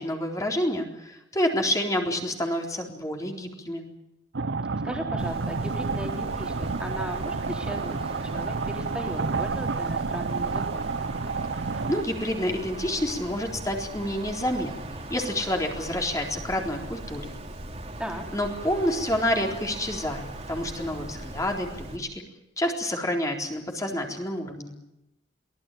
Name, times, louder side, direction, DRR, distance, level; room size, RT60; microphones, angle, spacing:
voice 1, 0.0-3.8 11.9-17.3 18.3-22.2 22.6-24.7, left 1 dB, 20° left, 2 dB, 3.9 m, -28 dB
sound 1, 4.3-12.0, right 4 dB, 80° right, 0.8 m, -30 dB
voice 2, 4.8-10.9 18.0-18.3, equal, 5° right, 2 dB, 3.9 m, -37 dB
Wind, 5.2-22.0, right 1 dB, 35° right, 3.3 m, -39 dB
23.5 x 18.0 x 9.3 m, 0.88 s
head